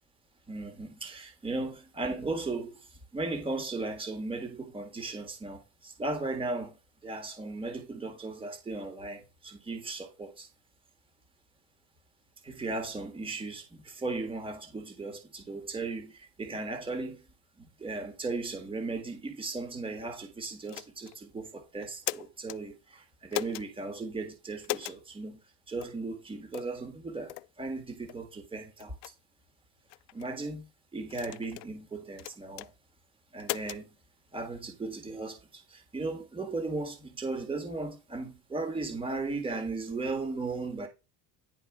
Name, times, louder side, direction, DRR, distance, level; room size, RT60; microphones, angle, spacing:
voice 1, 0.5-2.8 3.1-6.8 7.0-10.5 12.4-17.2 17.8-25.4 25.7-28.9 30.1-30.7 30.9-32.7 33.3-33.9 34.3-35.4 35.7-40.9, right 3 dB, 10° right, 1.8 m, -36 dB
sound 1, 20.7-21.2 21.8-22.6 23.3-23.7 24.6-25.0 25.8-25.9 26.5-26.7 27.3-27.5 28.1-28.2 28.8-29.1 29.9-30.3 31.1-31.7 32.2-32.7 33.4-33.8, left 23 dB, 75° left, 0.5 m, -37 dB
11.0 x 4.9 x 4.8 m
cardioid pair, 145°, 42 cm